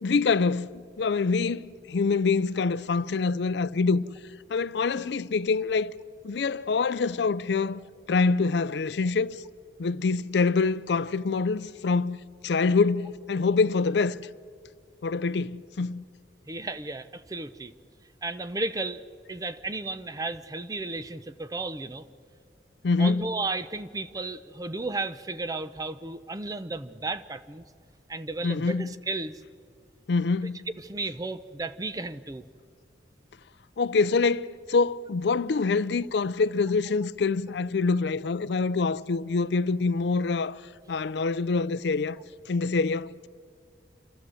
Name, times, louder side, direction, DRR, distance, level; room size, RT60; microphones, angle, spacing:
voice 1, 0.0-4.0 4.5-5.9 6.2-7.8 8.1-9.4 9.8-12.2 12.4-14.2 15.0-16.0 22.8-23.3 28.4-28.9 30.1-30.6 33.8-40.6 40.9-42.2 42.5-43.3, left 4 dB, 70° left, 0.4 m, -25 dB
voice 2, 16.5-17.7 18.2-19.0 19.3-22.0 23.0-27.6 28.1-29.4 30.4-30.5 30.8-32.4, right 3 dB, 20° right, 0.5 m, -34 dB
28.0 x 12.5 x 7.6 m
head